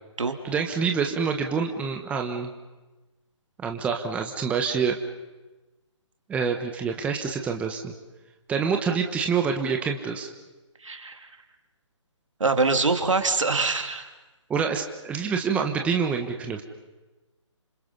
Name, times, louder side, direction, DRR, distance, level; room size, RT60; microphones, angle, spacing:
voice 1, 0.4-2.5 3.6-4.9 6.3-7.9 8.5-10.3 14.5-16.6, right 6 dB, 10° right, 3 dB, 1.2 m, -26 dB
voice 2, 10.8-11.3 12.4-14.1, right 3 dB, 75° right, 6 dB, 2.8 m, -24 dB
29.5 x 27.0 x 5.5 m, 1.1 s
figure-of-eight pair, 150°, 16 cm